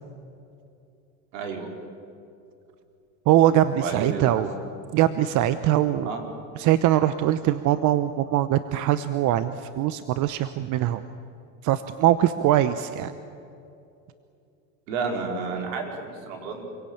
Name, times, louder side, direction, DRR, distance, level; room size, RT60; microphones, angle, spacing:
voice 1, 1.3-1.7 3.7-4.4 6.0-6.2 14.9-16.6, right 5 dB, 75° right, 2 dB, 4.6 m, -31 dB
voice 2, 3.3-4.5 4.9-6.1 6.6-11.0 11.6-13.1, right 12 dB, 50° right, 12 dB, 0.9 m, -22 dB
26.0 x 17.0 x 8.8 m, 2.7 s
supercardioid pair, 105°, 39 cm